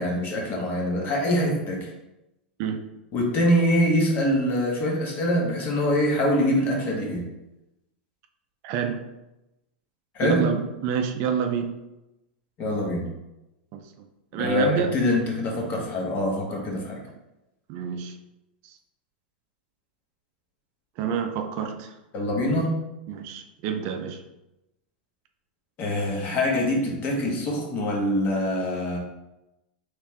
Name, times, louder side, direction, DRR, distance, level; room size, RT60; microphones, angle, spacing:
voice 1, 0.0-1.9 3.1-7.3 10.1-10.4 12.6-13.1 14.4-17.0 22.1-22.7 25.8-29.0, left 1 dB, 40° left, -1 dB, 1.2 m, -24 dB
voice 2, 8.6-9.1 10.2-11.7 13.7-13.9 14.3-15.0 17.7-18.2 18.6-18.8 21.0-21.9 23.1-24.2, right 7 dB, 50° right, 7 dB, 0.4 m, -28 dB
3.2 x 3.2 x 3.2 m, 0.95 s
hypercardioid pair, 110°, 5 cm